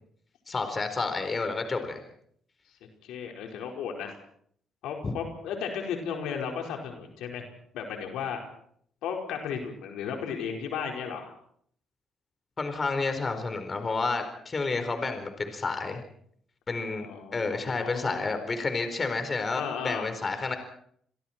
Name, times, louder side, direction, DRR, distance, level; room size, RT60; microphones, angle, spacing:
voice 1, 0.5-2.0 5.0-5.1 12.6-16.0 16.7-17.1 17.3-20.5, left 3 dB, 35° left, 7 dB, 4.5 m, -30 dB
voice 2, 2.8-4.1 4.8-7.5 7.7-8.4 9.0-11.3 16.8-18.3 19.6-20.1, left 7 dB, 90° left, 2 dB, 4.9 m, -35 dB
29.5 x 23.0 x 4.5 m, 0.64 s
cardioid pair, 90°, 0 cm